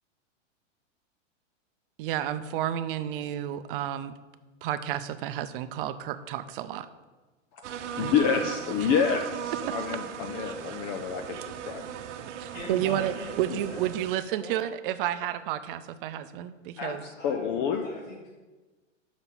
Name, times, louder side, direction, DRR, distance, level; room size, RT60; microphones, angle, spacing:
voice 1, 2.0-4.1 4.6-6.9 8.0-8.1 8.8-8.9 9.7-9.8 12.4-17.1, right 11 dB, 45° right, 13 dB, 0.6 m, -31 dB
sound 1, 7.6-14.2, right 8 dB, 65° right, 0.9 m, -38 dB
voice 2, 8.0-11.4 11.7-11.8 13.5-13.6 16.8-18.0, left 7 dB, 25° left, 5 dB, 0.3 m, -28 dB
voice 3, 12.5-13.4 13.7-13.9 14.4-14.6 17.2-18.3, left 1 dB, 85° left, -8 dB, 3.1 m, -41 dB
6.1 x 5.6 x 7.0 m, 1.2 s
hypercardioid pair, 130°, 38 cm